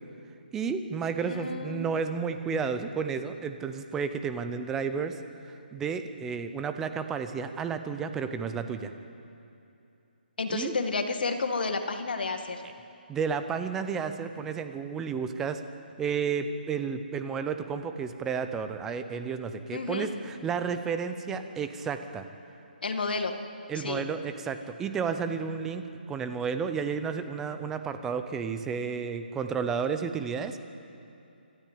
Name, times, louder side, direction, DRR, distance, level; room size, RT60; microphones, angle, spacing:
voice 1, 0.5-5.2 5.4-8.9 10.5-10.7 13.1-15.6 16.0-22.2 23.7-30.6, right 6 dB, 5° right, 9 dB, 0.6 m, -32 dB
voice 2, 1.2-1.9 10.4-12.6 19.7-20.1 22.8-23.3 23.8-24.1, left 3 dB, 65° left, 6 dB, 2.2 m, -31 dB
26.0 x 13.5 x 8.6 m, 2.7 s
hypercardioid pair, 175°, 6 cm